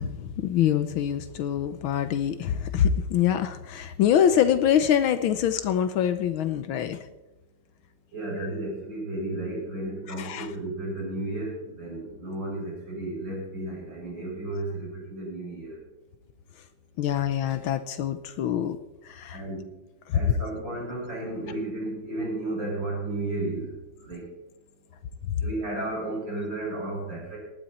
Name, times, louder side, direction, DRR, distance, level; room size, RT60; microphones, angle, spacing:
voice 1, 0.0-7.0 10.2-10.5 17.0-18.8 19.0-19.4 20.1-20.2, left 9 dB, 80° left, 10 dB, 1.6 m, -25 dB
voice 2, 8.1-15.8 19.3-19.6 20.1-23.7 24.0-24.3 25.4-27.4, right 2 dB, 60° right, -4 dB, 7.1 m, -33 dB
19.5 x 13.0 x 4.3 m, 0.99 s
omnidirectional pair, 2.3 m